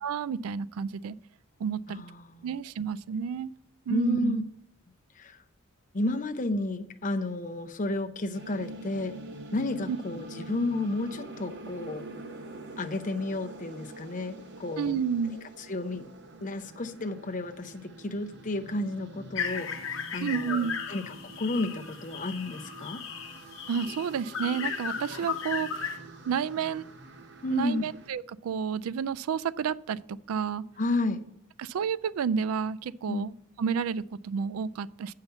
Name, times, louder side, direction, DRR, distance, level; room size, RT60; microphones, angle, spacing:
voice 1, 0.0-1.1 1.6-2.0 2.4-3.5 3.9-4.5 9.9-10.0 14.8-15.4 20.2-20.8 23.7-26.0 26.3-26.8 27.5-30.0 30.3-30.6 31.6-35.1, right 7 dB, 85° right, 19 dB, 0.3 m, -30 dB
voice 2, 1.9-2.5 3.9-4.4 5.2-5.4 5.9-9.1 9.5-12.0 12.8-15.0 15.7-16.0 16.4-23.0 27.4-27.9 30.8-31.2 33.1-33.3, left 2 dB, 35° left, 9 dB, 0.6 m, -32 dB
sound 1, 8.3-28.1, right 2 dB, 55° right, 1.0 m, -46 dB
sound 2, 19.3-26.0, left 7 dB, 60° left, 0.9 m, -36 dB
7.9 x 5.7 x 6.8 m, 0.71 s
head